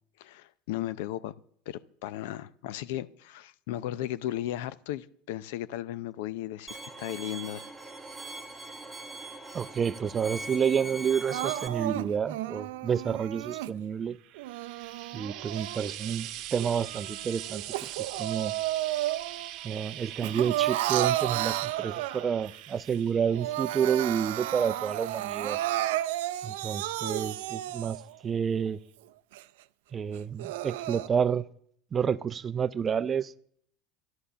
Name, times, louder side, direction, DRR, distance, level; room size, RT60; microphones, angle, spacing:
voice 1, 0.2-1.3 1.7-7.7, left 13 dB, 75° left, 0.5 m, -36 dB
Bowed string instrument, 6.7-11.7, right 2 dB, 5° right, 1.2 m, -41 dB
voice 2, 9.5-14.2 15.1-17.6 18.0-18.5 19.6-25.6 26.4-28.0 28.2-28.8 29.9-31.5 31.9-33.3, right 7 dB, 25° right, 0.5 m, -29 dB
Crying sobbing, 11.3-13.7 14.4-16.1 16.6-19.5 19.8-22.5 22.9-23.0 23.3-28.1 28.7-28.8 29.3-29.4 30.2-31.1, right 15 dB, 80° right, 0.4 m, -32 dB
Frying (food), 14.1-27.5 28.5-28.6, right 13 dB, 55° right, 0.9 m, -43 dB
11.5 x 11.5 x 6.8 m
supercardioid pair, 125°, 0 cm